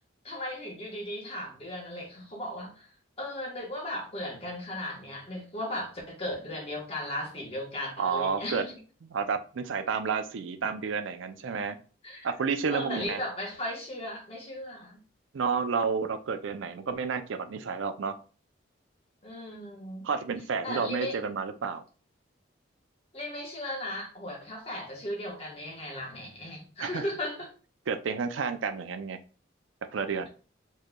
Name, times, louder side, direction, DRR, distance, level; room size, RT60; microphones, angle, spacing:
voice 1, 0.2-2.9 3.2-8.8 12.0-12.3 12.7-15.0 19.2-20.1 20.6-21.2 23.1-27.5, left 1 dB, 30° left, 0 dB, 1.1 m, -36 dB
voice 2, 8.0-8.6 9.1-11.8 12.2-13.2 15.3-18.2 20.0-21.8 26.8-27.0 27.9-29.2 29.9-30.3, right 5 dB, 75° right, 9 dB, 0.5 m, -30 dB
4.6 x 3.0 x 2.2 m, 0.37 s
head